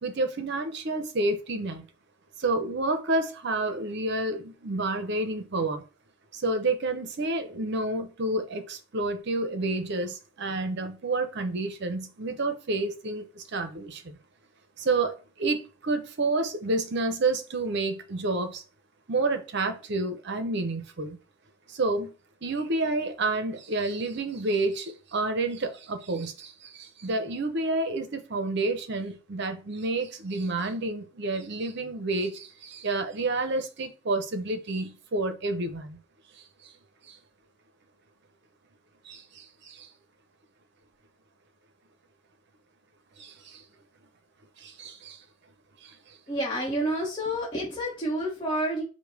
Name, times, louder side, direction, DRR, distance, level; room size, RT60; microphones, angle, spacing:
voice 1, 0.0-1.9 2.4-5.8 6.3-14.2 14.8-18.6 19.1-21.2 21.7-22.1 22.4-36.0 36.6-36.7 37.1-37.2 39.0-39.9 43.2-43.6 44.6-45.2 45.8-46.2, right 2 dB, 55° right, 0.6 m, -29 dB
voice 2, 46.3-48.8, equal, 20° left, 1.0 m, -29 dB
5.2 x 2.2 x 4.6 m
head